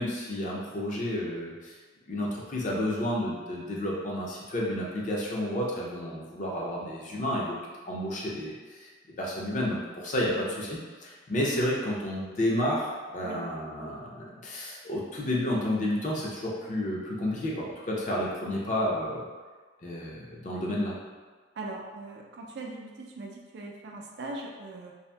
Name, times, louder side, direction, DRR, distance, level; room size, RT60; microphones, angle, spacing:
voice 1, 0.0-1.8 2.1-7.6 7.9-8.9 9.2-19.2 19.8-20.9, left 1 dB, 40° left, -3 dB, 0.5 m, -31 dB
voice 2, 21.6-24.9, right 2 dB, 60° right, 0 dB, 0.3 m, -40 dB
2.7 x 2.4 x 2.2 m, 1.4 s
head